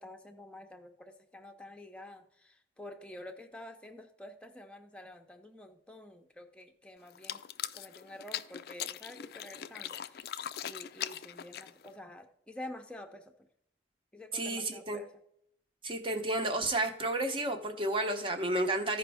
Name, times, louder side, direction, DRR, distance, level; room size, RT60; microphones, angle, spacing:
voice 1, 0.0-7.4 7.7-13.3 14.1-15.1, left 1 dB, 5° left, 4 dB, 0.7 m, -49 dB
sound 1, 7.1-12.0, left 10 dB, 55° left, 0.4 m, -40 dB
voice 2, 14.3-15.0 15.8-19.0, right 2 dB, 30° right, 6 dB, 0.9 m, -31 dB
14.5 x 5.1 x 3.5 m, 0.71 s
head